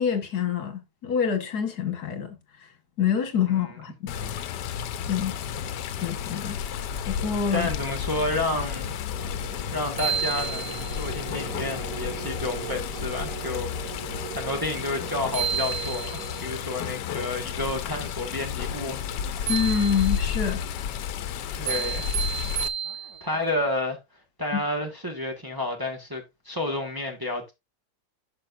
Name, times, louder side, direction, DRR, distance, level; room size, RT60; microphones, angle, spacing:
voice 1, 0.0-2.4 3.0-4.5 5.1-5.4 6.0-6.6 7.1-7.7 19.5-20.6 24.5-24.6, left 7 dB, 65° left, 2.0 m, -26 dB
Water, 4.1-22.7, left 9 dB, 85° left, 1.3 m, -32 dB
voice 2, 7.5-8.9 9.3-13.7 14.1-19.0 21.5-22.1 23.2-24.0 24.4-27.5, left 2 dB, 15° right, 1.5 m, -30 dB
sound 1, 9.1-17.4, right 4 dB, 70° right, 2.9 m, -40 dB
sound 2, 9.5-9.6 10.0-11.1 15.0-15.1 15.3-16.4 19.5-20.4 21.7-23.4, right 9 dB, 90° right, 1.8 m, -31 dB
11.5 x 5.8 x 2.6 m
omnidirectional pair, 1.8 m